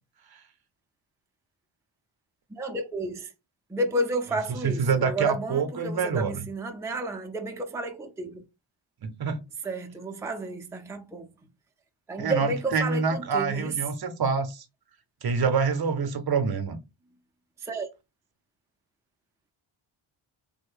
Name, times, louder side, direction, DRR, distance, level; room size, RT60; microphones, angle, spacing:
voice 1, 2.5-3.3 3.7-8.4 9.6-11.3 12.1-13.7 17.6-17.9, right 2 dB, 5° right, 0.5 m, -31 dB
voice 2, 4.8-6.4 9.0-9.4 12.2-14.6 15.2-16.8, right 5 dB, 50° right, 0.7 m, -26 dB
3.5 x 2.1 x 3.6 m
cardioid pair, 100°, 49 cm